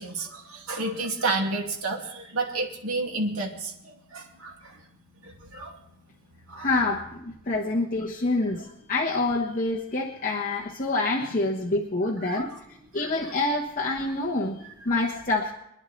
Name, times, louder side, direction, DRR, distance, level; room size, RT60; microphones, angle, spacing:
voice 1, 0.0-4.8 5.2-5.8 6.5-6.7 12.2-12.6 12.9-13.1, right 3 dB, 85° right, 1 dB, 2.4 m, -31 dB
voice 2, 6.6-12.5 12.9-15.5, left 2 dB, 40° left, -3 dB, 1.3 m, -27 dB
25.0 x 10.5 x 3.3 m, 0.79 s
head